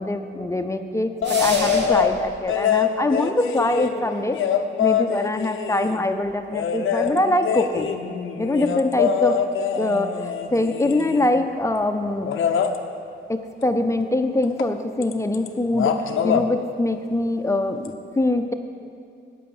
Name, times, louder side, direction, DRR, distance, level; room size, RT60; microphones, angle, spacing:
voice 1, 0.0-4.4 4.8-8.0 8.4-9.4 9.8-12.3 13.3-18.5, left 1 dB, 15° left, 6 dB, 0.6 m, -23 dB
sound 1, 1.2-2.1 2.5-6.0 6.5-11.4 12.3-12.8 14.6-14.7 15.0-15.5 15.7-16.5 17.8-17.9, left 8 dB, 90° left, 0.7 m, -24 dB
sound 2, 1.2-2.2, right 3 dB, 60° right, 1.5 m, -29 dB
9.4 x 8.6 x 7.1 m, 2.4 s
cardioid pair, 105°, 20 cm